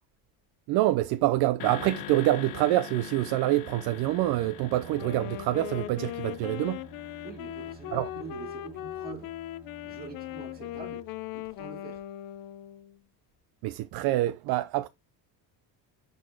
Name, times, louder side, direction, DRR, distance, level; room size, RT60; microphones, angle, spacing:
voice 1, 0.7-6.8 7.9-8.1 13.6-14.9, right 15 dB, 55° right, 0.5 m, -26 dB
sound 1, 1.6-8.0, left 15 dB, 70° left, 1.0 m, -44 dB
Bowed string instrument, 3.8-11.8, right 1 dB, 5° right, 3.0 m, -51 dB
Wind instrument woodwind instrument, 4.9-13.0, left 13 dB, 50° left, 0.6 m, -39 dB
voice 2, 7.2-9.3 9.8-11.1 11.3-12.0, right 4 dB, 20° right, 2.2 m, -44 dB
11.0 x 4.1 x 3.4 m
cardioid pair, 175°, 45 cm